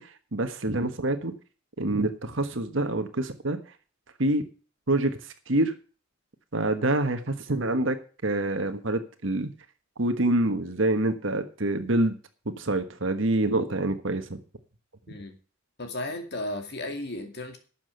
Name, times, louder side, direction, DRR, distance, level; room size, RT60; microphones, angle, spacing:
voice 1, 0.0-1.3 1.8-3.6 4.2-4.4 4.9-5.7 6.5-8.0 8.2-9.5 10.0-12.1 12.4-14.4, right 2 dB, 65° right, 8 dB, 1.4 m, -26 dB
voice 2, 15.8-17.6, left 1 dB, 50° left, 5 dB, 2.4 m, -34 dB
12.5 x 7.3 x 7.9 m, 0.37 s
head